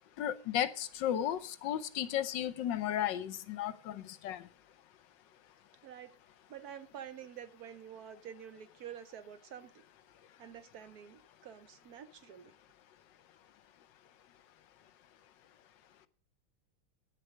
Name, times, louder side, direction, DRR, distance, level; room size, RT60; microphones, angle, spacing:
voice 1, 0.2-4.4, left 11 dB, 65° left, 1.3 m, -34 dB
voice 2, 6.5-9.8 10.4-12.5, right 9 dB, 65° right, 1.0 m, -48 dB
11.0 x 9.6 x 6.4 m
omnidirectional pair, 2.3 m